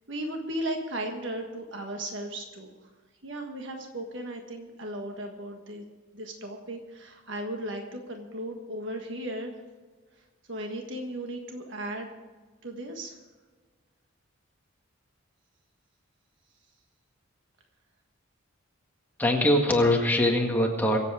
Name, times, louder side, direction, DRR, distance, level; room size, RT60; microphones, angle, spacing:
voice 1, 0.1-2.7 3.2-5.8 6.1-9.5 10.5-12.1 12.6-13.2, right 1 dB, 60° right, 3 dB, 1.6 m, -36 dB
voice 2, 19.2-21.0, left 1 dB, 10° left, 0 dB, 1.8 m, -22 dB
24.5 x 8.3 x 4.9 m, 1.4 s
head